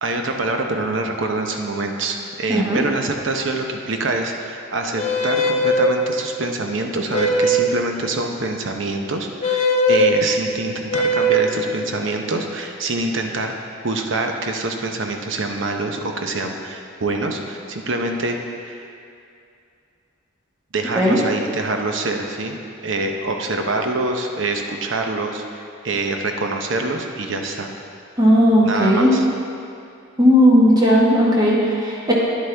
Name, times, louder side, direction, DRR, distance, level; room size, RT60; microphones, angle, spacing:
voice 1, 0.0-13.5 13.8-18.9 20.7-22.6 22.8-27.7 28.6-29.3, right 2 dB, 65° right, 3 dB, 0.8 m, -25 dB
voice 2, 2.5-2.8 20.9-21.2 28.2-29.1 30.2-32.1, equal, 20° right, -5 dB, 1.3 m, -15 dB
sound 1, 5.0-5.9 7.1-7.7 9.4-10.1 10.9-11.6, equal, 35° left, 0.6 m, -18 dB
10.0 x 8.0 x 3.4 m, 2.5 s
head